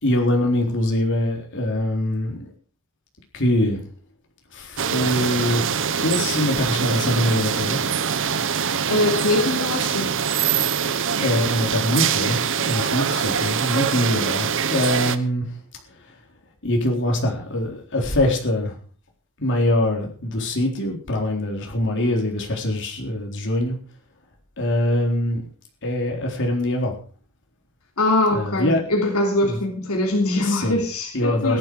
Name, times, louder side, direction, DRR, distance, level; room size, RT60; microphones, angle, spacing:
voice 1, 0.0-2.5 3.3-3.8 4.5-7.8 11.2-15.4 16.6-18.7 19.4-23.8 24.6-25.5 25.8-26.9 28.3-28.8 29.4-29.6 30.4-30.8 31.1-31.6, left 1 dB, 60° left, 1 dB, 3.9 m, -23 dB
sound 1, 4.8-15.2, right 7 dB, 60° right, 1.0 m, -23 dB
voice 2, 8.9-10.1 28.0-31.6, left 1 dB, 80° left, 0 dB, 3.1 m, -22 dB
17.0 x 12.0 x 4.8 m, 0.42 s
head